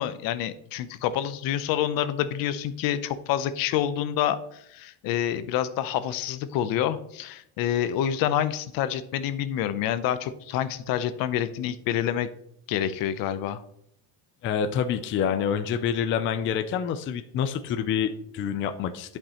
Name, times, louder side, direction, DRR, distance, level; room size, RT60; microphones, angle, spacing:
voice 1, 0.0-12.3 12.7-13.6, left 10 dB, 65° left, 13 dB, 0.7 m, -27 dB
voice 2, 14.4-19.2, left 8 dB, 35° left, 9 dB, 0.4 m, -27 dB
11.0 x 5.4 x 2.9 m, 0.73 s
cardioid pair, 155°, 37 cm